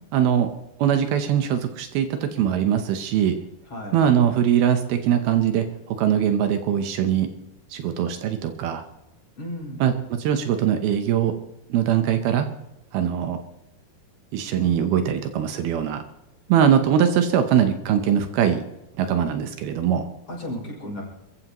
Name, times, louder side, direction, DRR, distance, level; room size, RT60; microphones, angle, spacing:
voice 1, 0.1-0.5 0.8-3.4 3.9-7.3 7.7-8.8 9.8-11.3 11.7-12.5 12.9-13.4 14.3-16.0 16.5-18.6 19.0-20.1, right 9 dB, 75° right, 7 dB, 2.7 m, -21 dB
voice 2, 3.7-4.0 9.4-9.8 20.3-21.0, left 1 dB, 40° left, -2 dB, 7.1 m, -34 dB
27.5 x 15.0 x 3.0 m, 0.97 s
omnidirectional pair, 4.6 m